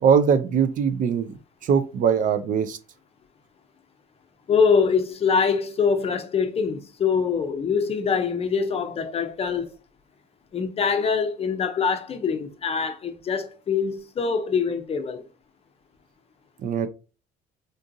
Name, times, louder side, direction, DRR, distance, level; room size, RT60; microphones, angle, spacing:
voice 1, 0.0-2.8 16.6-16.9, right 7 dB, 50° right, 0.4 m, -21 dB
voice 2, 4.5-9.7 10.5-15.2, left 5 dB, 35° left, 0.6 m, -24 dB
3.8 x 2.4 x 2.6 m
cardioid pair, 110°, 17 cm